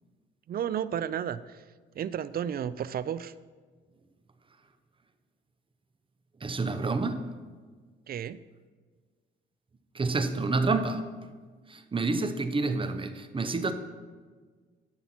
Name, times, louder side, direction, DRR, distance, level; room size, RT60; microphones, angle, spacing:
voice 1, 0.5-1.6 2.0-3.3 8.1-8.4, right 9 dB, 50° right, 16 dB, 0.4 m, -32 dB
voice 2, 6.4-7.2 9.9-11.0 11.7-13.7, right 3 dB, 25° right, 9 dB, 0.8 m, -28 dB
12.5 x 5.7 x 4.4 m, 1.5 s
cardioid pair, 90°, 20 cm